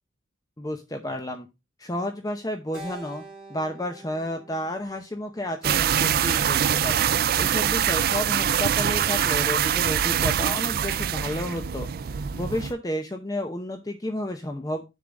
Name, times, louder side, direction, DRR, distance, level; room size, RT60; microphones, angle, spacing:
voice 1, 0.6-1.5 1.8-3.2 3.5-14.8, left 1 dB, 20° left, 5 dB, 0.6 m, -31 dB
Keyboard (musical), 2.7-7.1, right 2 dB, 5° right, 2.3 m, -47 dB
sound 1, 5.6-12.7, right 9 dB, 50° right, 0.3 m, -24 dB
6.9 x 3.7 x 6.4 m, 0.25 s
head